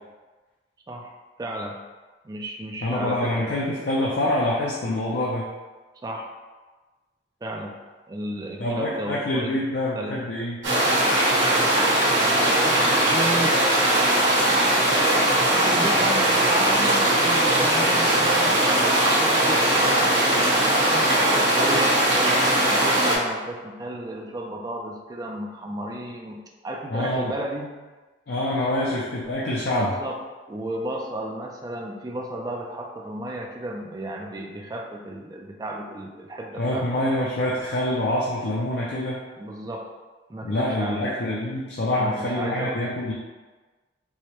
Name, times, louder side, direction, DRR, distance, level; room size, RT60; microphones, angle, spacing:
voice 1, 1.4-1.7 2.2-3.5 6.0-6.3 7.4-7.8 8.1-9.5 9.9-10.2 12.1-13.6 15.5-26.4 26.6-27.7 29.8-30.2 30.5-37.0 39.4-39.9 40.3-41.1 41.9-42.8, right 1 dB, 20° right, 1 dB, 0.3 m, -33 dB
voice 2, 2.8-5.5 8.6-10.6 26.9-27.3 28.3-30.0 36.6-39.2 40.4-43.1, left 1 dB, 60° left, -5 dB, 0.5 m, -26 dB
sound 1, 10.6-23.2, right 1 dB, 80° right, 1.3 m, -20 dB
4.7 x 2.1 x 2.9 m, 1.3 s
head